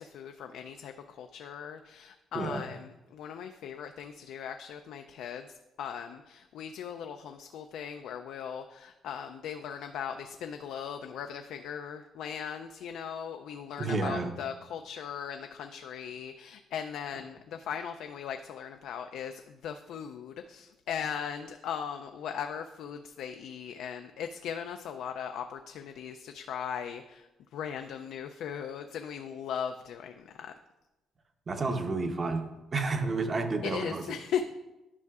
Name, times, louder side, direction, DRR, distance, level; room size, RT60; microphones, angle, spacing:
voice 1, 0.0-30.5 33.6-34.4, left 8 dB, 80° left, 6 dB, 0.3 m, -38 dB
voice 2, 2.3-2.7 13.8-14.3 31.5-34.0, right 3 dB, 40° right, 6 dB, 0.8 m, -31 dB
10.5 x 5.6 x 2.4 m, 1.0 s
cardioid pair, 90°, 0 cm